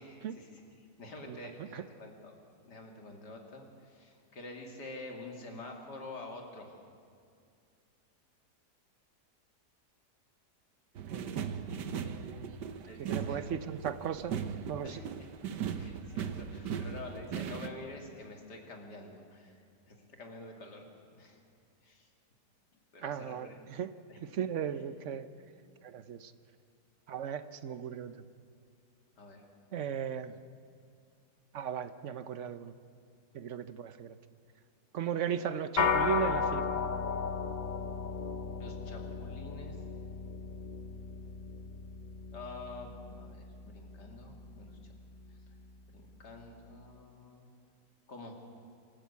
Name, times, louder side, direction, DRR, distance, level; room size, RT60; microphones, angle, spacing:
voice 1, 0.0-2.3 2.7-6.8 12.8-13.5 14.8-19.6 19.9-20.9 21.2-21.4 21.8-22.1 22.9-23.6 24.1-24.2 25.5-25.6 29.2-29.4 38.6-39.8 42.3-44.8 45.9-47.5 48.1-48.4, left 2 dB, 80° left, 2 dB, 3.1 m, -48 dB
voice 2, 1.2-1.8 11.1-12.7 13.0-14.4 14.7-15.0 23.0-23.9 24.2-25.3 25.8-26.3 27.1-28.2 29.7-30.4 31.5-32.7 33.3-34.2 34.9-36.7, right 8 dB, 55° right, 13 dB, 1.0 m, -37 dB
sound 1, 10.9-17.7, right 7 dB, 90° right, 1.6 m, -38 dB
sound 2, 35.8-45.3, left 5 dB, 35° left, 0.7 m, -35 dB
26.5 x 14.0 x 8.4 m, 2.3 s
omnidirectional pair, 1.8 m